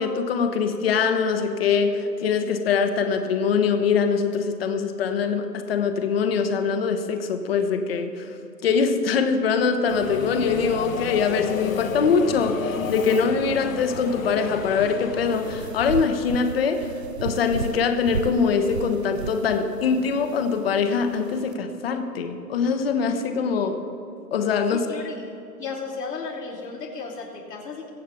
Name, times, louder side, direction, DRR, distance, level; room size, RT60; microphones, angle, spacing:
voice 1, 0.0-8.3 8.6-16.9 17.2-23.8 24.3-24.9, left 5 dB, 35° left, 8 dB, 1.1 m, -23 dB
Subway metro underground, 9.9-16.1, left 6 dB, 55° left, 1.3 m, -32 dB
sound 1, 15.1-21.5, right 6 dB, 45° right, 0.5 m, -35 dB
voice 2, 24.7-25.1 25.6-27.9, left 4 dB, 70° left, -2 dB, 2.9 m, -34 dB
22.0 x 8.4 x 3.5 m, 2.9 s
figure-of-eight pair, 140°, 49 cm